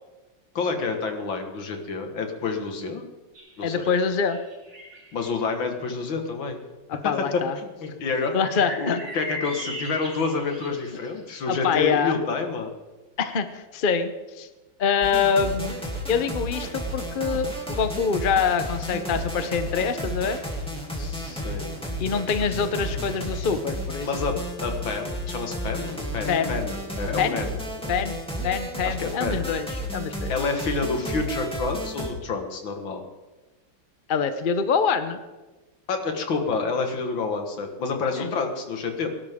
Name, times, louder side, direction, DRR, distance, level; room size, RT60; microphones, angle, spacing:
voice 1, 0.6-3.0 3.6-3.8 5.1-6.6 7.0-7.1 7.6-12.7 21.0-21.6 24.0-24.3 24.6-27.5 27.8-27.9 28.8-29.4 30.3-33.0 35.9-39.1, left 4 dB, 70° left, 4 dB, 2.4 m, -28 dB
sound 1, 3.4-5.3 8.3-11.3, equal, 40° right, 2.8 m, -38 dB
voice 2, 3.6-4.4 6.9-7.6 8.3-9.0 11.5-12.2 13.2-14.5 14.8-15.8 16.1-20.4 22.0-24.1 26.3-26.6 27.2-27.4 27.9-28.2 28.4-30.3 34.1-35.2 38.1-38.4, left 6 dB, 50° left, 9 dB, 0.6 m, -25 dB
sound 2, 15.0-32.1, equal, 5° left, 2.5 m, -32 dB
22.0 x 12.0 x 3.7 m, 1.1 s
omnidirectional pair, 2.2 m